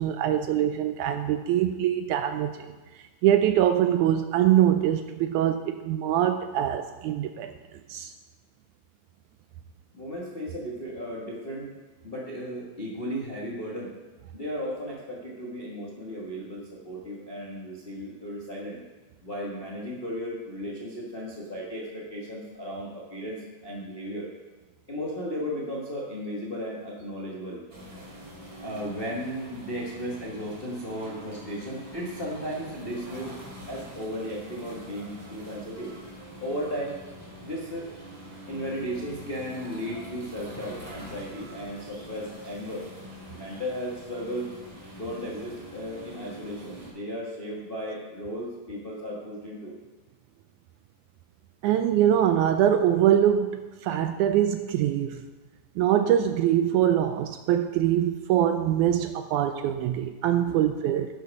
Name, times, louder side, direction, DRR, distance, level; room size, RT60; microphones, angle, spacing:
voice 1, 0.0-2.7 3.2-7.5 7.9-8.1 51.6-55.2 55.8-61.1, right 11 dB, 80° right, 8 dB, 1.8 m, -23 dB
voice 2, 9.9-11.7 12.0-14.0 14.3-18.8 19.2-24.3 24.9-27.6 28.6-33.4 33.7-35.9 36.4-37.0 37.4-37.9 38.5-42.9 43.3-44.5 44.9-49.7 60.4-60.7, equal, 80° left, -4 dB, 0.5 m, -35 dB
sound 1, 27.7-46.9, equal, 30° right, 3.6 m, -44 dB
12.5 x 6.6 x 5.3 m, 1.2 s
omnidirectional pair, 3.8 m